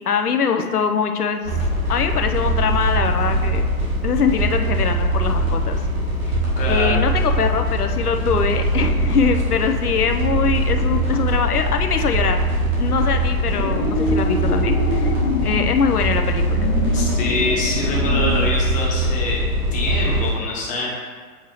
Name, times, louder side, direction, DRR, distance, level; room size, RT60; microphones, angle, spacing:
voice 1, 0.0-1.6 1.9-3.7 4.0-5.8 6.7-12.4 12.8-15.1 15.4-16.7, left 6 dB, 70° left, 6 dB, 0.7 m, -22 dB
sound 1, 1.4-20.3, right 1 dB, 25° right, 1.6 m, -22 dB
voice 2, 6.6-7.0 16.9-19.4 19.7-20.9, left 2 dB, 15° left, -4 dB, 1.2 m, -25 dB
sound 2, 13.4-15.7 16.3-18.5, left 2 dB, 35° left, 0.8 m, -26 dB
7.9 x 4.6 x 2.9 m, 1.5 s
figure-of-eight pair, 115°, 46 cm